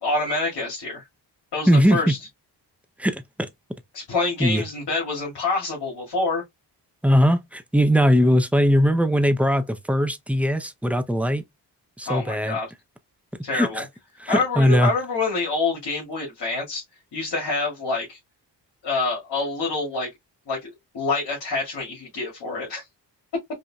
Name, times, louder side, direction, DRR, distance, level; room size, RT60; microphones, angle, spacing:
voice 1, 0.0-1.0 1.5-2.2 3.9-6.4 12.1-12.7 13.4-13.8 14.3-16.8 17.1-18.2 18.8-20.1 20.5-22.9, left 3 dB, 70° left, 2.2 m, -26 dB
voice 2, 1.7-2.1 3.0-3.5 4.4-4.6 7.0-11.4 12.0-12.6 13.5-13.9 14.2-14.9, equal, 5° right, 0.6 m, -20 dB
5.1 x 2.7 x 2.3 m
cardioid pair, 80°, 42 cm